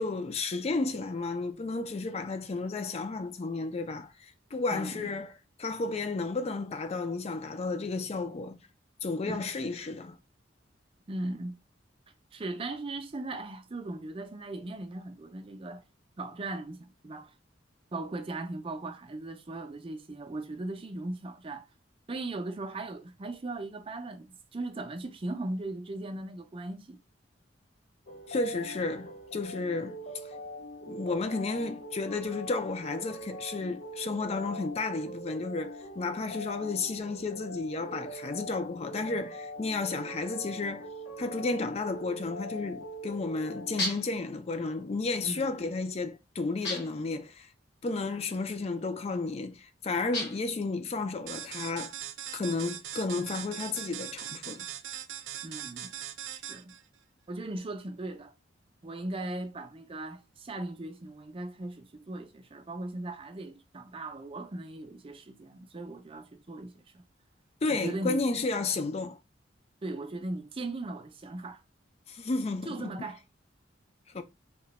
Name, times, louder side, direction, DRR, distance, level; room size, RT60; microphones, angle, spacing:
voice 1, 0.0-4.1 4.5-5.3 5.6-8.6 9.0-10.2 28.3-30.0 30.9-40.9 41.2-47.5 47.8-51.9 52.3-54.7 67.6-69.2 72.1-72.9 74.1-74.2, left 3 dB, 35° left, 0.4 m, -32 dB
voice 2, 4.7-5.1 9.3-9.4 11.1-11.6 12.3-15.8 16.2-17.3 17.9-21.6 22.1-27.0 45.2-45.8 55.4-55.9 56.3-56.8 57.3-58.3 58.8-67.0 67.7-68.2 69.8-71.6 72.7-73.2, right 2 dB, 30° right, 0.5 m, -38 dB
sound 1, 28.1-43.8, right 1 dB, 80° left, 1.6 m, -42 dB
sound 2, 43.8-44.2 46.6-47.1 50.1-50.6, left 1 dB, 60° left, 1.0 m, -34 dB
sound 3, 51.3-56.8, right 11 dB, 90° right, 0.4 m, -40 dB
2.9 x 2.2 x 4.1 m
head